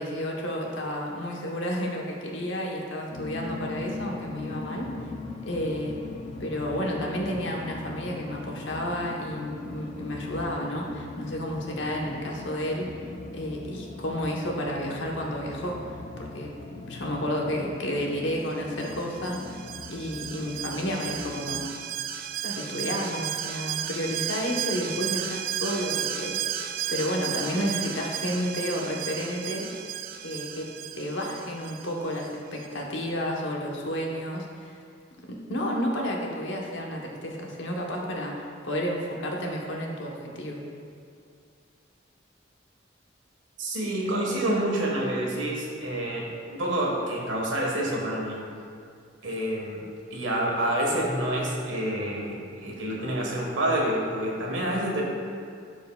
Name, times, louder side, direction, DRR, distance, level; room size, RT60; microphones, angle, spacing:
voice 1, 0.0-4.9 5.4-6.0 6.4-12.9 13.3-15.8 16.2-16.5 16.9-19.6 19.9-21.7 22.4-29.7 30.2-30.7 30.9-34.7 35.5-40.6, equal, 75° left, -1 dB, 1.0 m, -31 dB
sound 1, 3.1-21.7, left 3 dB, 35° left, 0.4 m, -40 dB
Alarm, 18.8-32.3 32.6-32.7, right 10 dB, 50° right, 0.3 m, -34 dB
voice 2, 43.6-48.4 49.2-49.8 50.1-55.0, right 1 dB, 90° right, -2 dB, 1.4 m, -28 dB
12.0 x 4.7 x 2.3 m, 2.4 s
head